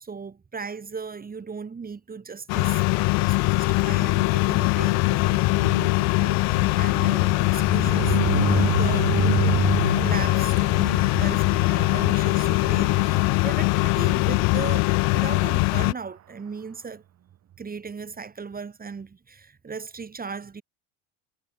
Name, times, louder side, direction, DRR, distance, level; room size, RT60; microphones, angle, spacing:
voice 1, 0.0-9.6 10.0-17.0 17.6-20.6, right 5 dB, 20° right, 4.4 m, -37 dB
sound 1, 2.5-15.9, left 28 dB, 65° left, 0.8 m, -22 dB
sound 2, 2.9-15.1, left 24 dB, 85° left, 4.6 m, -46 dB
sound 3, 5.2-14.0 14.4-14.6 14.9-15.0 15.2-15.5, right 11 dB, 40° right, 1.8 m, -30 dB
supercardioid pair, 110°, 40 cm